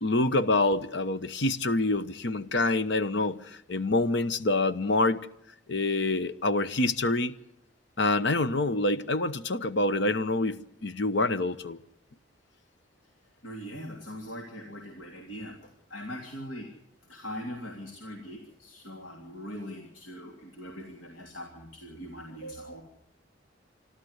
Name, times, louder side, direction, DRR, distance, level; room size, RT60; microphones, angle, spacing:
voice 1, 0.0-5.3 5.7-7.4 8.0-11.8 22.4-22.8, left 2 dB, 65° left, 1.0 m, -26 dB
voice 2, 13.4-15.5 15.9-16.7 17.1-22.8, equal, 90° left, 3.2 m, -41 dB
27.0 x 12.5 x 8.1 m
head